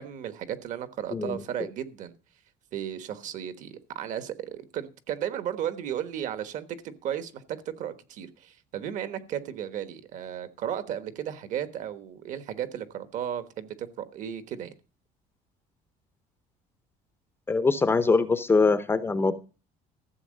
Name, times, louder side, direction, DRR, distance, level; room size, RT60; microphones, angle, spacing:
voice 1, 0.0-2.1 2.7-14.7, right 10 dB, 50° right, 1.3 m, -34 dB
voice 2, 17.5-19.3, left 4 dB, 15° left, 0.7 m, -23 dB
14.5 x 7.9 x 6.4 m
cardioid pair, 175°, 16 cm